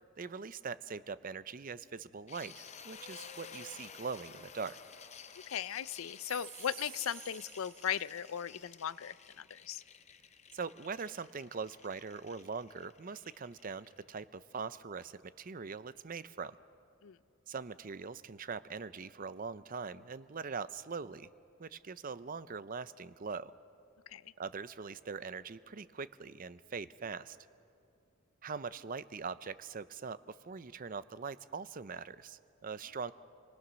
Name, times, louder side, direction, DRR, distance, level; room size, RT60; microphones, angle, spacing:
voice 1, 0.2-4.8 10.5-16.6 17.5-21.3 21.6-23.5 24.4-27.4 28.4-33.1, right 5 dB, 40° right, 15 dB, 0.5 m, -42 dB
sound 1, 2.3-14.2, left 6 dB, 30° left, 0.7 m, -53 dB
voice 2, 5.5-9.8 17.0-17.2 24.1-24.2, left 9 dB, 75° left, 17 dB, 0.5 m, -37 dB
sound 2, 6.1-8.6, right 9 dB, 70° right, 2.1 m, -51 dB
28.5 x 20.0 x 6.2 m, 2.5 s
head